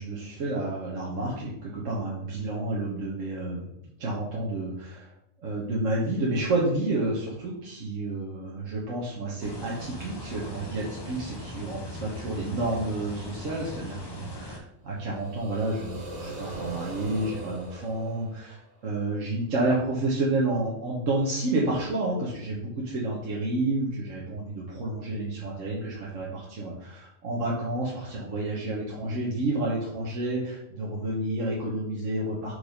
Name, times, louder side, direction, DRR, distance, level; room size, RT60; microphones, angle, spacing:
voice 1, 0.0-3.7 4.0-5.1 5.4-32.5, right 2 dB, 70° right, -5 dB, 1.5 m, -30 dB
sound 1, 9.4-14.6, equal, 20° left, 0.8 m, -39 dB
sound 2, 14.9-18.9, right 1 dB, 35° right, 1.2 m, -40 dB
4.9 x 4.7 x 5.2 m, 0.79 s
omnidirectional pair, 1.4 m